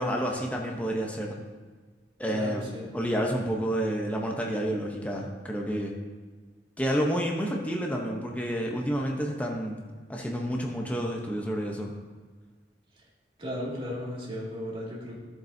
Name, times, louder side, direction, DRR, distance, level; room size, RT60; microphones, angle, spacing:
voice 1, 0.0-1.4 2.2-2.6 2.9-6.0 6.8-9.8 10.1-11.9, equal, 10° left, 0 dB, 0.9 m, -29 dB
voice 2, 2.3-2.9 13.4-15.2, equal, 30° right, -5 dB, 2.3 m, -35 dB
14.0 x 7.6 x 2.7 m, 1.4 s
head